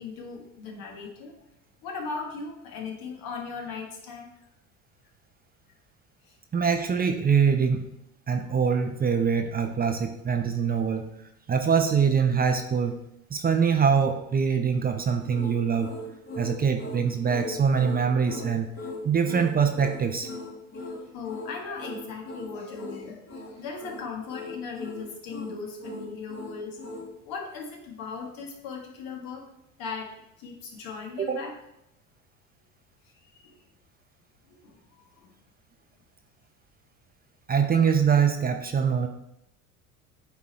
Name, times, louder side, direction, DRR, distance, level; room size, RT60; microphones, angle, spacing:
voice 1, 0.0-1.3 1.8-4.3 6.3-6.4 20.7-26.8 27.2-29.5 29.8-30.1 30.4-31.5 33.3-33.5 34.5-34.8 35.1-35.3, left 5 dB, 60° left, 2 dB, 1.9 m, -38 dB
voice 2, 6.5-7.9 8.3-11.1 11.5-13.0 13.3-15.9 16.4-18.7 19.0-20.3 31.2-31.4 37.5-39.1, right 6 dB, 25° right, 6 dB, 0.7 m, -24 dB
sound 1, 15.3-27.1, left 1 dB, 35° left, 1.6 m, -39 dB
8.7 x 3.5 x 4.3 m, 0.82 s
hypercardioid pair, 80°, 40 cm